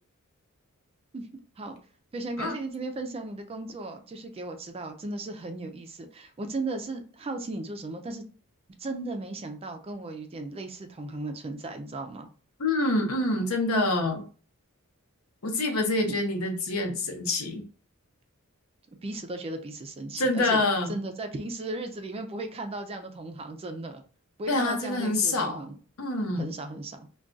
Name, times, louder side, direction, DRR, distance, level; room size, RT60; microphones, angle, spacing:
voice 1, 2.1-8.2 8.8-12.3 16.1-16.2 19.0-20.6 20.9-24.0 24.4-25.8 26.4-27.0, right 2 dB, 25° right, 6 dB, 0.4 m, -36 dB
voice 2, 12.6-14.2 15.4-17.6 20.2-21.0 24.5-25.6 26.0-26.5, left 2 dB, 70° left, 4 dB, 0.7 m, -26 dB
2.4 x 2.2 x 3.8 m, 0.39 s
head